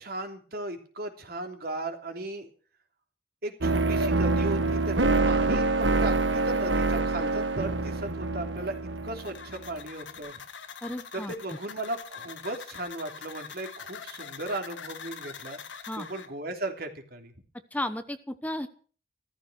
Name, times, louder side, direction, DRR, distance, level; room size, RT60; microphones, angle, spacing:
voice 1, 0.0-2.5 3.4-8.7 9.0-10.4 11.1-15.6 16.0-17.3, right 2 dB, 55° right, 4 dB, 3.2 m, -36 dB
sound 1, 3.6-9.7, right 3 dB, 80° right, 1.4 m, -26 dB
sound 2, 9.2-16.3, left 6 dB, 80° left, 1.8 m, -44 dB
voice 2, 10.8-11.3 15.9-16.1 17.7-18.7, left 1 dB, 10° left, 10 dB, 0.9 m, -33 dB
16.0 x 14.0 x 6.3 m, 0.42 s
head